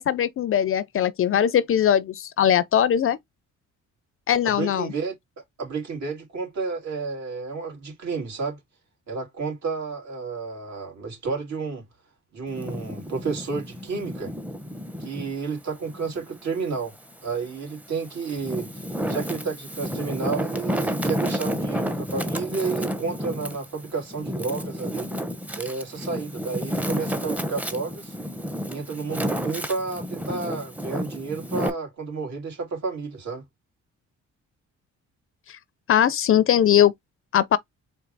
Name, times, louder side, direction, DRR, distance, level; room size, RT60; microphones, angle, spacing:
voice 1, 0.0-3.2 4.3-4.9 35.5-35.6 35.9-36.9 37.3-37.6, left 10 dB, 45° left, 0.5 m, -20 dB
voice 2, 4.4-5.1 5.6-8.6 9.1-11.8 12.3-14.3 15.0-16.9 17.2-25.1 25.6-28.1 28.6-33.4, right 4 dB, 65° right, 2.9 m, -31 dB
Wind, 12.5-15.3 15.8-17.1 17.7-31.7, equal, 5° right, 0.7 m, -31 dB
4.4 x 2.7 x 3.9 m
cardioid pair, 90°, 30 cm